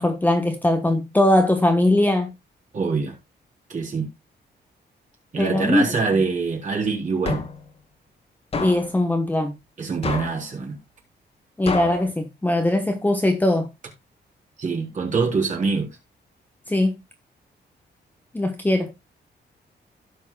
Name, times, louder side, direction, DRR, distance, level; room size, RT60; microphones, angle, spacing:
voice 1, 0.0-2.3 5.4-5.9 8.6-9.5 11.6-13.7 16.7-17.0 18.3-18.9, left 1 dB, 10° left, 1.2 m, -20 dB
voice 2, 2.7-3.1 3.7-4.1 5.3-7.4 9.8-10.8 14.6-16.0, right 4 dB, 45° right, 3.9 m, -24 dB
sound 1, 7.3-7.7 8.5-9.0 10.0-10.5 11.7-12.1, left 3 dB, 35° left, 1.8 m, -28 dB
16.5 x 6.4 x 2.4 m
wide cardioid pair, 155°, 18 cm